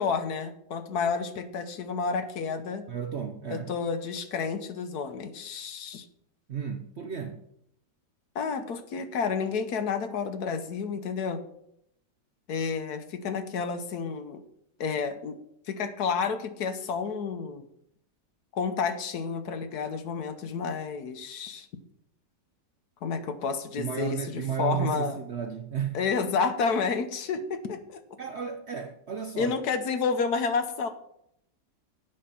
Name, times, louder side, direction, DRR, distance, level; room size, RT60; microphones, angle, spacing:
voice 1, 0.0-2.8 3.5-6.1 8.3-11.4 12.5-14.4 14.8-15.4 15.7-17.6 18.5-21.7 23.0-25.2 25.9-28.0 29.4-30.9, left 5 dB, 70° left, 9 dB, 1.3 m, -30 dB
voice 2, 2.9-3.7 6.5-7.4 23.8-26.0 28.2-29.5, right 8 dB, 60° right, 7 dB, 0.7 m, -33 dB
8.6 x 5.7 x 6.9 m, 0.73 s
omnidirectional pair, 1.8 m